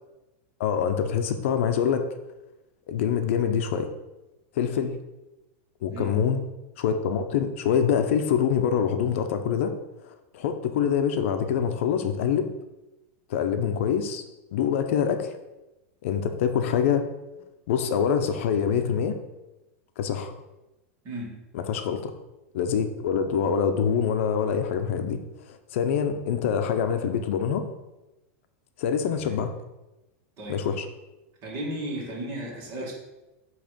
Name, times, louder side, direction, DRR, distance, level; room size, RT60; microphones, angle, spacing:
voice 1, 0.6-2.1 2.9-3.9 4.6-5.0 5.8-6.4 6.8-9.7 10.3-12.5 13.3-14.2 14.5-15.3 16.0-17.1 17.7-19.2 20.0-20.3 21.5-22.1 22.5-25.2 25.5-27.6 28.8-29.5 30.5-30.9, left 7 dB, 65° left, 7 dB, 0.7 m, -25 dB
voice 2, 21.0-21.4 29.1-29.5 30.4-30.6 31.4-32.9, right 1 dB, 35° right, -3 dB, 2.4 m, -34 dB
8.0 x 3.2 x 5.2 m, 1.0 s
supercardioid pair, 150°, 7 cm